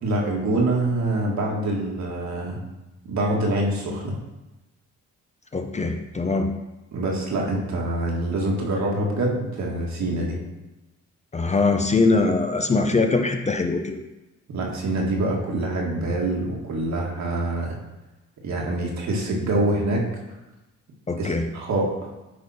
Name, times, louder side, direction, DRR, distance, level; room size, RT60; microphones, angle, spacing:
voice 1, 0.0-2.6 3.0-4.2 6.9-10.4 14.5-17.8 18.4-20.1 21.2-21.9, right 1 dB, 65° right, -2 dB, 1.9 m, -25 dB
voice 2, 5.5-6.5 11.3-14.0 21.1-21.5, left 3 dB, 25° left, 5 dB, 0.6 m, -22 dB
10.5 x 3.6 x 4.3 m, 1.0 s
cardioid pair, 90°, 30 cm